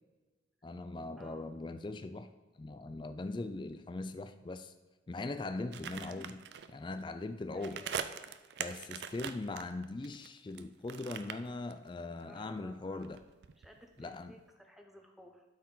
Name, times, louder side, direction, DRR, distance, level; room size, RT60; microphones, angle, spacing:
voice 1, 0.6-2.3 2.6-4.7 5.1-6.4 6.7-7.8 8.6-13.2 14.0-14.3, left 2 dB, 25° left, 9 dB, 0.3 m, -40 dB
voice 2, 1.2-1.5 5.9-6.3 7.5-8.3 12.0-13.1 13.6-15.4, equal, ahead, 3 dB, 0.7 m, -56 dB
sound 1, 5.7-6.7 7.5-10.6 10.9-12.2 12.5-14.1 14.4-14.5, right 7 dB, 65° right, 0.4 m, -42 dB
12.0 x 4.4 x 3.9 m, 1.2 s
head